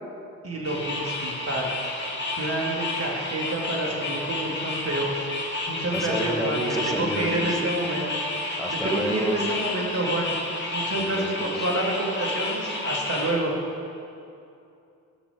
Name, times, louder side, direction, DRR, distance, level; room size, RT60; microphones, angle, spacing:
voice 1, 0.4-1.7 2.4-5.2 5.7-8.1 8.7-10.3 10.7-13.5, right 1 dB, 35° right, -1 dB, 2.7 m, -28 dB
sound 1, 0.6-13.3, left 2 dB, 25° left, 2.5 m, -31 dB
voice 2, 5.9-7.7 8.6-9.4 10.9-11.7, equal, ahead, 0 dB, 2.2 m, -31 dB
15.5 x 6.5 x 5.2 m, 2.6 s
hypercardioid pair, 45°, 39 cm